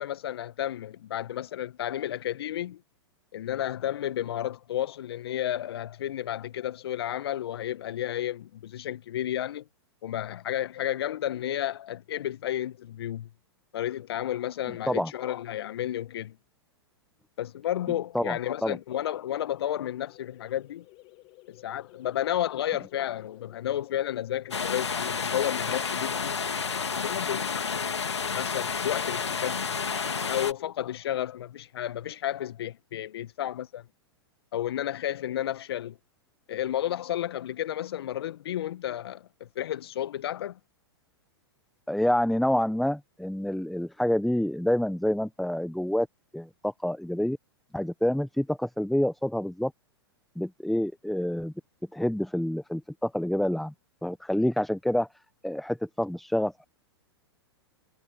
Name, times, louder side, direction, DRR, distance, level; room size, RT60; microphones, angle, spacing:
voice 1, 0.0-2.8 3.3-9.7 10.0-13.3 13.7-16.4 17.4-20.9 21.5-26.4 27.0-29.8 30.3-33.9 34.5-36.0 36.5-40.6, left 12 dB, 65° left, 1.8 m, -32 dB
voice 2, 18.1-18.8 41.9-46.1 46.3-47.4 47.7-49.7 50.4-51.5 51.9-53.7 54.0-55.1 55.4-56.6, left 1 dB, ahead, 1.1 m, -27 dB
sound 1, 18.2-27.5, left 21 dB, 40° left, 5.7 m, -55 dB
sound 2, 24.5-30.5, left 5 dB, 85° left, 2.3 m, -30 dB
figure-of-eight pair, 105°, 14 cm